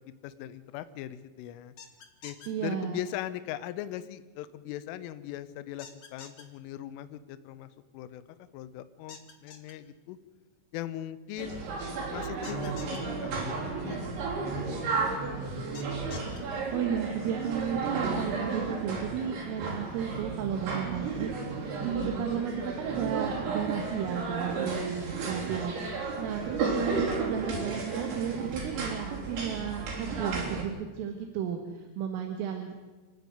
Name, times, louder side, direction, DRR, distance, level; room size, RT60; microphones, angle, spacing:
voice 1, 0.2-1.7 2.2-2.4 2.6-8.2 8.5-10.2 10.7-15.0 15.2-15.3, left 12 dB, 80° left, 12 dB, 3.4 m, -40 dB
sound 1, 1.8-2.5 5.8-6.4 9.1-9.7 12.4-13.0 15.7-16.4, left 6 dB, 60° left, 1.6 m, -46 dB
voice 2, 2.5-3.0 16.7-32.7, right 8 dB, 85° right, 4 dB, 4.1 m, -34 dB
sound 2, 11.4-30.6, right 4 dB, 65° right, 5.8 m, -33 dB
29.0 x 9.8 x 9.4 m, 1.2 s
omnidirectional pair, 5.8 m